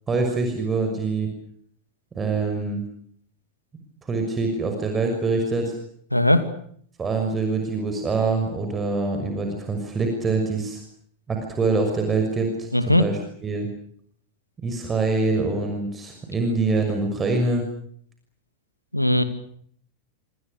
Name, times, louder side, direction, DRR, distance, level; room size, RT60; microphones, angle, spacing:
voice 1, 0.1-1.3 2.1-2.8 4.0-5.7 7.0-10.8 11.3-13.7 14.6-17.7, right 3 dB, 20° right, 4 dB, 6.2 m, -25 dB
voice 2, 6.1-6.4 12.7-13.1 18.9-19.2, left 1 dB, 90° left, 11 dB, 2.5 m, -18 dB
27.0 x 26.5 x 6.7 m, 0.63 s
figure-of-eight pair, 90°, 0 cm